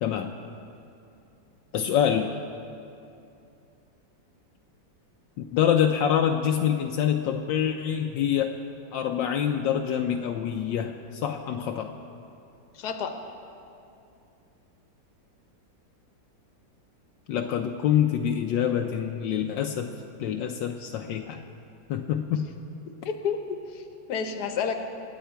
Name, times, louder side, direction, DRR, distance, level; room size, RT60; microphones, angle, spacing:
voice 1, 0.0-0.3 1.7-2.4 5.4-8.5 8.9-11.9 17.3-19.9 20.2-21.4 21.9-22.5, left 9 dB, 80° left, 3 dB, 1.3 m, -26 dB
voice 2, 12.7-13.2 23.0-23.4 23.7-24.8, left 6 dB, 60° left, 6 dB, 1.5 m, -30 dB
25.5 x 9.2 x 4.5 m, 2.6 s
omnidirectional pair, 2.0 m